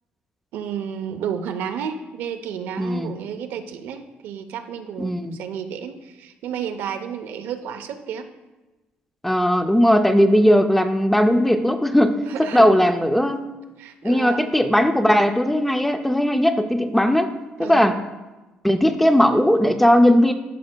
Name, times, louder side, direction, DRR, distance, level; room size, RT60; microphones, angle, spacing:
voice 1, 0.5-8.3 12.3-12.8 13.8-14.5 17.6-17.9, right 8 dB, 80° right, 7 dB, 0.6 m, -31 dB
voice 2, 2.8-3.1 5.0-5.4 9.2-13.5 14.0-17.3 17.6-18.0 18.6-20.3, equal, 5° left, 8 dB, 0.3 m, -18 dB
12.5 x 5.2 x 2.2 m, 1.1 s
cardioid pair, 160°, 3 cm